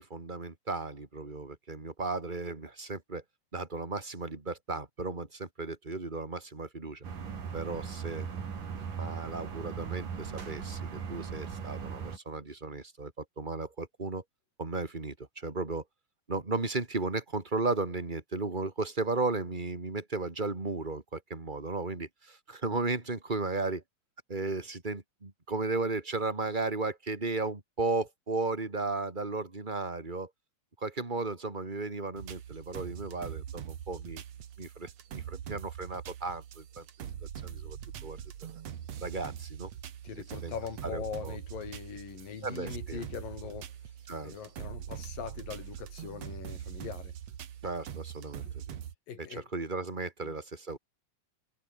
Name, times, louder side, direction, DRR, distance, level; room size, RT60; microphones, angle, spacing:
voice 1, 0.0-3.2 3.5-7.0 7.5-8.3 9.0-14.2 14.6-15.8 16.3-23.8 24.3-30.3 30.8-34.2 34.6-36.9 37.4-37.8 38.0-38.2 39.0-39.7 40.4-40.5 40.8-41.4 42.4-43.0 44.1-44.3 47.6-48.8 49.2-50.8, right 3 dB, 15° right, 2.6 m, -35 dB
sound 1, 7.0-12.2, right 6 dB, 75° right, 5.4 m, -38 dB
sound 2, 32.2-49.0, right 9 dB, 55° right, 2.7 m, -43 dB
voice 2, 40.0-43.7 44.2-47.1 48.4-48.5 49.1-49.5 50.2-50.3, left 7 dB, 80° left, 5.0 m, -41 dB
omnidirectional pair, 3.9 m